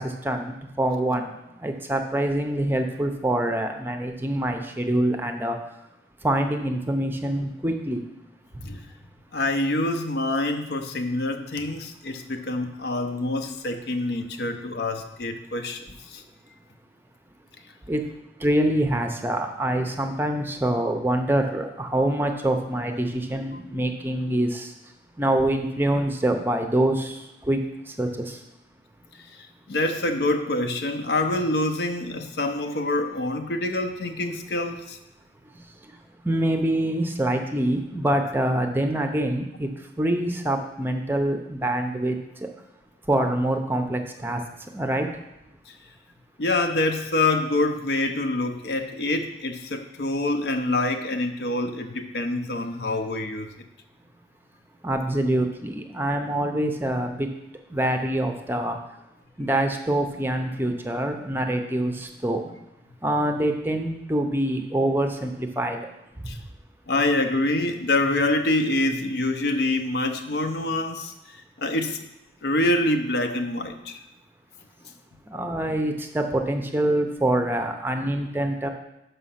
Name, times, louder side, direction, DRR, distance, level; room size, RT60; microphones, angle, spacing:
voice 1, 0.0-1.3 1.6-5.6 6.2-8.0 17.9-18.1 18.4-24.7 25.2-27.6 27.9-28.4 36.2-39.7 40.0-42.5 43.1-44.4 44.7-45.1 54.8-57.3 57.7-58.8 59.4-62.5 63.0-65.8 75.3-78.7, right 1 dB, 10° right, 5 dB, 0.5 m, -25 dB
voice 2, 9.3-16.2 29.7-35.0 45.7-45.8 46.4-53.5 66.2-66.4 66.9-71.1 71.6-72.0 72.4-74.0, left 2 dB, 65° left, 6 dB, 0.7 m, -26 dB
6.2 x 5.6 x 5.7 m, 0.89 s
head